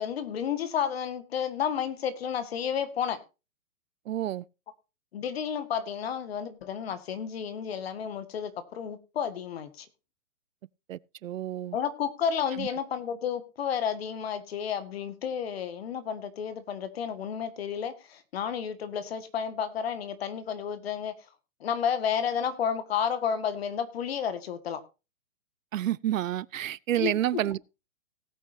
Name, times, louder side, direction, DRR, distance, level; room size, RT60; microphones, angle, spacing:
voice 1, 0.0-3.2 5.1-9.9 11.7-21.1 21.6-24.8 27.0-27.4, left 8 dB, 45° left, 1.8 m, -31 dB
voice 2, 4.1-4.4 10.9-11.8 12.6-12.7 25.7-27.6, right 12 dB, 70° right, 0.6 m, -29 dB
18.5 x 8.4 x 2.7 m
hypercardioid pair, 170°, 41 cm